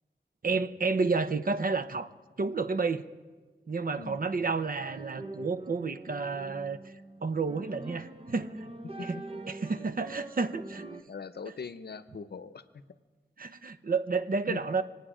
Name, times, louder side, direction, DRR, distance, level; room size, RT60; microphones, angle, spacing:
voice 1, 0.4-2.1 2.4-3.1 3.7-6.9 7.2-8.7 9.0-9.2 9.5-10.8 13.4-14.8, right 4 dB, 50° right, 12 dB, 0.8 m, -30 dB
sound 1, 4.5-11.0, right 2 dB, 30° right, 1.1 m, -44 dB
voice 2, 11.1-12.6 14.5-14.6, left 5 dB, 65° left, 13 dB, 0.7 m, -40 dB
26.5 x 9.5 x 5.0 m, 1.4 s
wide cardioid pair, 60°, 18 cm